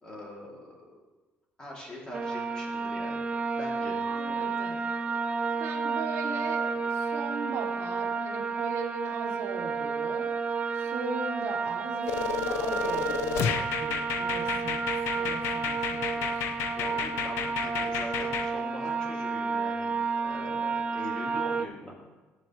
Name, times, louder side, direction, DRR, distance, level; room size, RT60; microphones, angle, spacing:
voice 1, 0.0-0.8 1.6-3.2 3.5-4.0 4.3-4.5 5.6-5.8 16.7-19.9 20.2-22.0, equal, 20° left, -3 dB, 2.8 m, -42 dB
sound 1, 2.1-21.7, right 5 dB, 25° right, 0.4 m, -31 dB
voice 2, 4.1-4.9 5.6-10.3 10.7-16.6, right 4 dB, 75° right, 3 dB, 1.2 m, -39 dB
sound 2, 12.1-18.5, left 8 dB, 80° left, 0.7 m, -32 dB
14.5 x 7.7 x 3.2 m, 1.2 s
cardioid pair, 130°, 4 cm